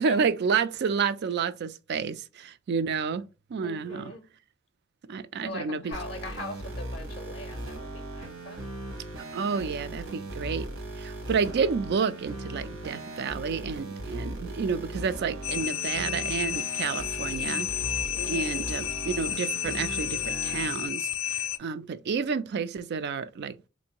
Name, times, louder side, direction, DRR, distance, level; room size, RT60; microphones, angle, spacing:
voice 1, 0.0-3.2 3.5-4.1 5.1-6.0 9.3-10.7 11.0-17.7 18.3-23.6, right 5 dB, 55° right, 0.4 m, -30 dB
voice 2, 3.6-4.2 5.4-8.7 18.1-18.7, left 2 dB, 30° left, 0.5 m, -41 dB
Electro Bass, 5.9-20.7, right 1 dB, 75° right, 1.1 m, -38 dB
sound 1, 15.4-21.6, left 11 dB, 80° left, 0.3 m, -31 dB
3.8 x 2.6 x 2.8 m
head